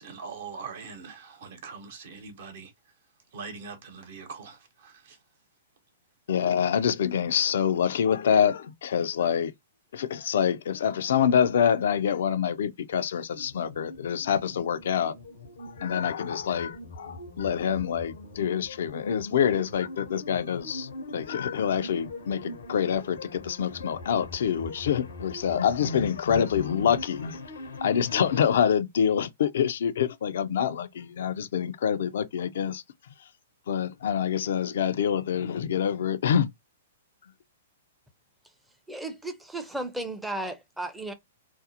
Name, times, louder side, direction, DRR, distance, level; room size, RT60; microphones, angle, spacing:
voice 1, 0.0-2.7 3.3-5.2, right 5 dB, 65° right, 0.9 m, -42 dB
voice 2, 6.3-9.5 9.9-15.1 15.6-27.4 27.8-32.8 33.7-36.5, left 8 dB, 70° left, 0.3 m, -26 dB
sound 1, 13.3-28.5, left 2 dB, 85° left, 0.8 m, -42 dB
voice 3, 38.9-41.1, right 2 dB, 5° right, 0.5 m, -34 dB
2.5 x 2.0 x 2.7 m
hypercardioid pair, 130°, 0 cm